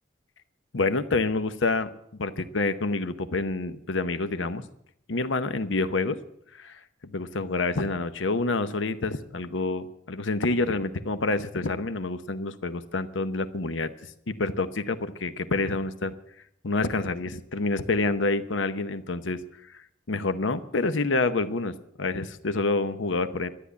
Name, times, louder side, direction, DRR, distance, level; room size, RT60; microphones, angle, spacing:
voice 1, 0.7-1.9 2.2-4.6 5.1-6.2 6.6-13.9 14.3-16.1 16.6-19.4 20.1-23.5, left 3 dB, 80° left, 11 dB, 0.9 m, -27 dB
12.5 x 10.0 x 8.2 m, 0.74 s
head